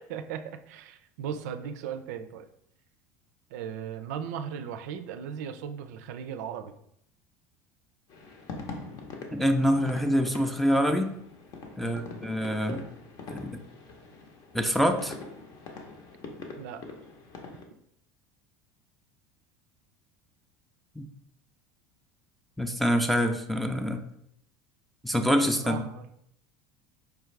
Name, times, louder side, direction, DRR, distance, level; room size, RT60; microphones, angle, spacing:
voice 1, 0.0-2.5 3.5-6.8 11.8-12.1 16.6-16.8 25.6-26.1, right 8 dB, 80° right, 9 dB, 0.3 m, -37 dB
sound 1, 8.1-17.6, left 3 dB, 50° left, 0.8 m, -43 dB
voice 2, 9.3-11.1 11.8-12.8 13.3-13.6 14.5-15.2 21.0-21.1 22.6-24.0 25.0-25.9, equal, ahead, 4 dB, 0.3 m, -25 dB
4.8 x 2.4 x 3.2 m, 0.73 s
supercardioid pair, 110°, 9 cm